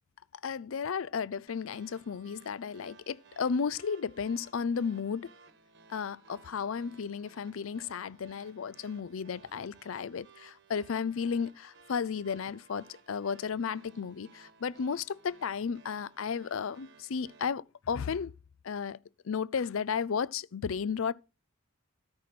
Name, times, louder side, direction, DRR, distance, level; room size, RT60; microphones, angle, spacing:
voice 1, 0.4-5.3 5.9-18.3 18.6-19.0 19.2-21.1, left 6 dB, 75° left, 0.5 m, -34 dB
sound 1, 1.5-17.5, right 4 dB, 55° right, 1.3 m, -59 dB
13.5 x 4.8 x 5.9 m
head